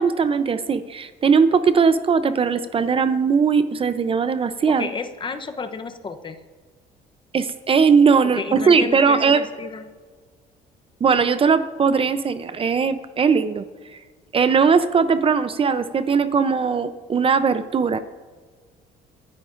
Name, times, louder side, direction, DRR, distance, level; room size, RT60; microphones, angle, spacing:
voice 1, 0.0-4.9 7.3-9.4 11.0-13.6 14.3-18.0, right 5 dB, 35° right, 11 dB, 0.6 m, -19 dB
voice 2, 4.7-6.4 8.3-9.9, left 5 dB, 30° left, 8 dB, 0.8 m, -32 dB
25.0 x 10.0 x 2.6 m, 1.5 s
cardioid pair, 110°, 17 cm